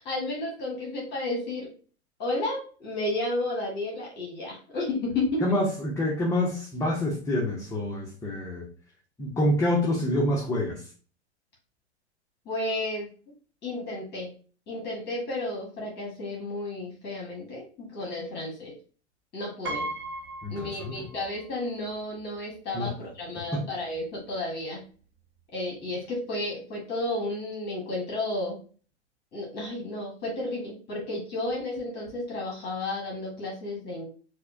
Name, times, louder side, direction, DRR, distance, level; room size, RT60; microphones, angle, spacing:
voice 1, 0.0-1.7 2.2-5.4 12.4-13.1 13.6-14.3 14.7-18.7 19.3-19.9 20.5-24.8 25.5-28.6 29.3-34.0, left 2 dB, 30° left, -3 dB, 1.2 m, -32 dB
voice 2, 5.4-8.7 9.2-10.9 20.4-21.0 22.7-22.9 23.5-23.6, left 1 dB, 10° left, -3 dB, 0.6 m, -27 dB
Piano, 19.6-21.5 21.8-21.9 23.0-23.1 23.4-23.7, right 2 dB, 50° right, 1.1 m, -36 dB
4.2 x 2.1 x 2.5 m, 0.39 s
figure-of-eight pair, 100°, 35 cm